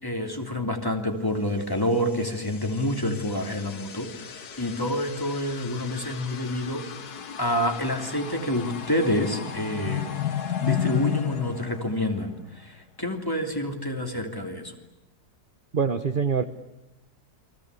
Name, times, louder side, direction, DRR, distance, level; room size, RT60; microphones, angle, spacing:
voice 1, 0.0-6.8 7.4-10.2 10.6-14.7, left 1 dB, 15° left, 3 dB, 3.1 m, -28 dB
sound 1, 1.9-12.5, left 9 dB, 75° left, 2.0 m, -34 dB
voice 2, 15.7-16.4, right 6 dB, 35° right, 10 dB, 1.1 m, -24 dB
28.5 x 25.0 x 8.3 m, 0.95 s
omnidirectional pair, 1.7 m